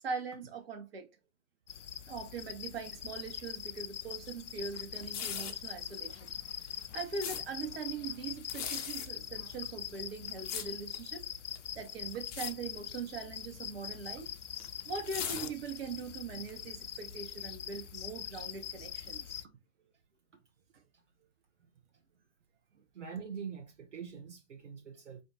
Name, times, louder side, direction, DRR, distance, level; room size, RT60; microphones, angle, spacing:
voice 1, 0.0-1.1 2.1-6.3 6.9-11.2 11.7-14.2 14.8-19.4, right 5 dB, 50° right, 1.4 m, -41 dB
sound 1, 1.7-19.4, left 9 dB, 70° left, 0.5 m, -43 dB
sound 2, 5.0-5.7 6.5-7.4 8.4-9.1 9.9-11.0 11.5-11.9 12.2-12.5 12.8-13.0 13.9-16.0 16.5-16.6, left 8 dB, 25° left, 0.9 m, -39 dB
voice 2, 21.6-22.2 22.9-25.2, right 6 dB, 65° right, 1.1 m, -45 dB
5.0 x 2.6 x 4.0 m
figure-of-eight pair, 105°, 38 cm